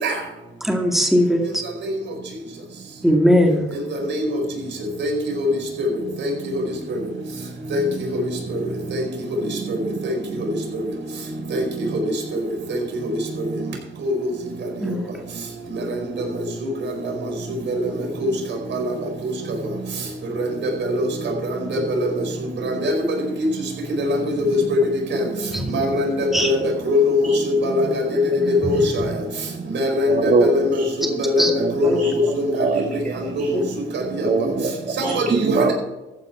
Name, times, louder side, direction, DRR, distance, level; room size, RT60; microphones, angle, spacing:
voice 1, 0.6-1.4 3.0-3.6 14.8-15.0 25.5-25.6 26.3-26.5 28.4-29.1 31.0-31.1 31.4-31.5 31.8-32.1 33.5-33.6 35.0-35.2, equal, ahead, 1 dB, 2.1 m, -20 dB
voice 2, 4.1-4.4 5.0-5.1 5.4-5.5 5.8-5.9 6.2-6.3 6.6-6.7 7.7-7.9 8.1-8.3 8.9-9.1 9.7-9.8 10.0-10.1 11.5-11.6 12.3-12.4 12.7-12.8 14.0-14.1 17.0-17.1 17.7-17.8 18.2-18.3 18.7-18.9 19.2-19.3 20.6-21.1 21.7-22.1 22.6-22.9 24.0-24.8 25.1-25.2 25.7-26.6 26.9-28.0 28.6-29.0 29.7-30.8 31.2-32.7 33.4-33.6 33.9-34.3 35.0-35.7, left 1 dB, 65° right, 1 dB, 4.7 m, -21 dB
voice 3, 30.1-30.9 31.6-32.3 32.6-33.5 34.2-34.7 35.0-35.7, right 4 dB, 40° right, 3 dB, 1.7 m, -23 dB
14.5 x 9.3 x 4.6 m, 1.0 s
cardioid pair, 90°, 20 cm